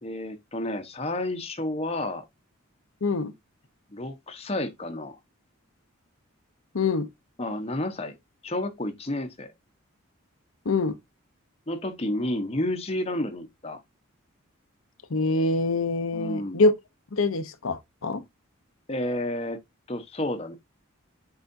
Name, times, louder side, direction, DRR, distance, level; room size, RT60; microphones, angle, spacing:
voice 1, 0.0-2.2 3.9-5.1 7.4-8.1 8.4-9.5 11.7-13.8 16.1-16.6 18.9-19.6 19.9-20.5, left 1 dB, 30° left, 1.0 m, -30 dB
voice 2, 3.0-3.3 6.7-7.1 10.7-11.0 15.1-16.7 17.1-18.2, left 3 dB, 75° left, 0.8 m, -24 dB
8.2 x 4.9 x 2.6 m
head